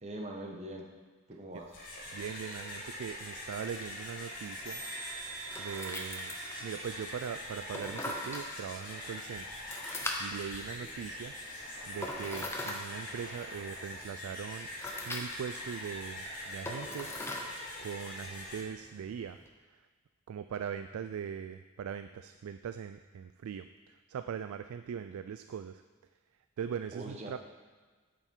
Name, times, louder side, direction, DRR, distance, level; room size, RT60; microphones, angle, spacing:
voice 1, 0.0-0.9 1.3-1.8 10.8-10.9 26.9-27.4, right 1 dB, 30° right, 1 dB, 1.0 m, -42 dB
sound 1, 1.6-18.6, left 1 dB, 40° left, 1.8 m, -43 dB
sound 2, 2.0-19.5, left 1 dB, 10° left, 0.7 m, -44 dB
voice 2, 2.1-4.8 5.6-6.3 6.6-11.3 11.9-14.7 15.0-17.2 17.5-19.4 20.3-23.7 24.1-25.8 26.6-27.4, right 7 dB, 80° right, 10 dB, 0.3 m, -41 dB
sound 3, 4.6-8.6, right 7 dB, 60° left, 2.6 m, -49 dB
8.7 x 6.9 x 4.5 m, 1.4 s
head